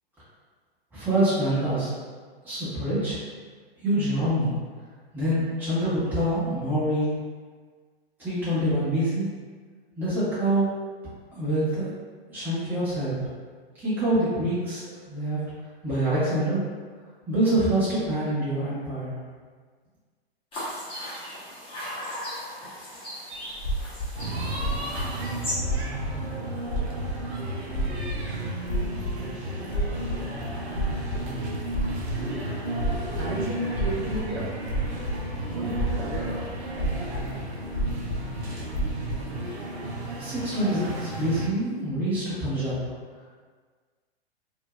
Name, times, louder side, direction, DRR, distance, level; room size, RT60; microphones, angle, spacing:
voice 1, 0.9-1.9 2.4-3.2 3.8-4.5 5.1-7.1 8.2-9.3 10.0-10.7 11.3-11.9 12.3-13.1 13.8-15.4 15.8-16.6 17.3-19.1 40.2-42.7, right 1 dB, 5° right, -14 dB, 1.2 m, -25 dB
sound 1, 20.5-25.5, equal, 15° left, 1.0 m, -37 dB
sound 2, 23.5-24.2 24.5-25.1 25.6-26.2 26.6-27.4 27.7-29.2 29.7-30.2 30.5-31.2 31.7-32.2 32.7-33.3 33.7-34.3 34.6-35.3 35.7-36.2 36.5-37.3 37.7-38.2 38.7-39.3, right 1 dB, 35° left, 0.6 m, -29 dB
sound 3, 24.2-41.5, right 1 dB, 85° right, 0.7 m, -33 dB
voice 2, 33.1-34.5 35.5-36.8, right 1 dB, 40° right, -10 dB, 1.3 m, -33 dB
2.8 x 2.6 x 2.3 m, 1.5 s
figure-of-eight pair, 105°, 32 cm